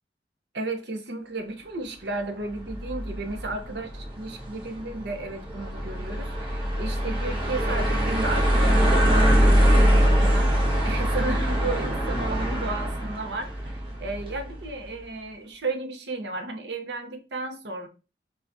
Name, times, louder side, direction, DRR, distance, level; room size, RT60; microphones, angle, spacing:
voice 1, 0.5-10.5 10.8-17.9, right 2 dB, 70° right, 0.8 m, -33 dB
sound 1, 2.5-14.7, equal, 25° right, 1.2 m, -23 dB
5.5 x 2.4 x 2.6 m
head